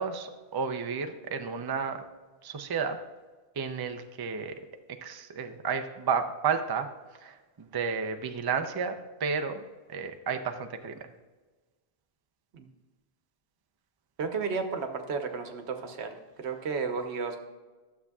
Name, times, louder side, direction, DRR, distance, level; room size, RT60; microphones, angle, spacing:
voice 1, 0.0-2.0 2.4-3.0 3.6-4.5 5.0-6.9 7.2-9.6 9.9-11.0, right 6 dB, 35° right, 6 dB, 0.4 m, -32 dB
voice 2, 14.2-17.4, right 5 dB, 85° right, 6 dB, 1.1 m, -33 dB
12.0 x 7.1 x 2.3 m, 1.3 s
omnidirectional pair, 1.1 m